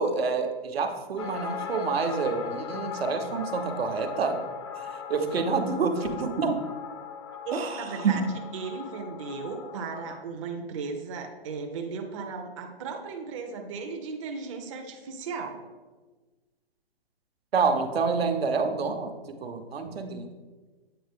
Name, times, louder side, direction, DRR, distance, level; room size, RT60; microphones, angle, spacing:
voice 1, 0.0-4.5 4.8-6.6 7.5-8.3 17.5-19.1 19.4-20.3, right 4 dB, 80° right, 5 dB, 0.8 m, -28 dB
sound 1, 1.2-10.2, left 7 dB, 30° left, 0.5 m, -39 dB
voice 2, 7.5-15.6, right 5 dB, 35° right, 3 dB, 0.5 m, -36 dB
7.8 x 3.7 x 3.5 m, 1.3 s
hypercardioid pair, 150°, 30 cm